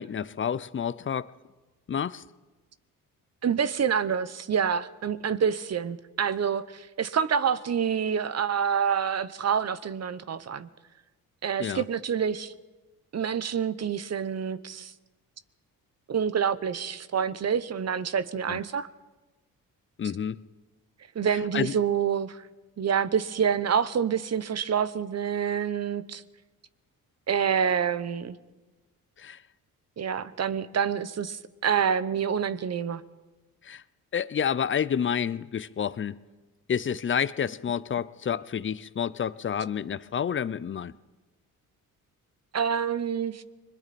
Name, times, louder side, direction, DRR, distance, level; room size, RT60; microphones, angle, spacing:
voice 1, 0.0-1.3 1.9-2.2 11.6-11.8 18.5-18.6 20.0-20.4 21.5-21.7 29.2-29.4 33.6-33.8 34.1-36.2 36.7-40.9, left 8 dB, 35° left, 0.6 m, -29 dB
voice 2, 3.4-10.7 11.4-12.5 13.1-14.9 16.1-18.9 21.1-22.5 22.8-26.2 27.3-28.4 30.0-33.0 42.5-43.4, right 7 dB, 45° right, 0.9 m, -27 dB
30.0 x 21.5 x 4.3 m
cardioid pair, 85°, 36 cm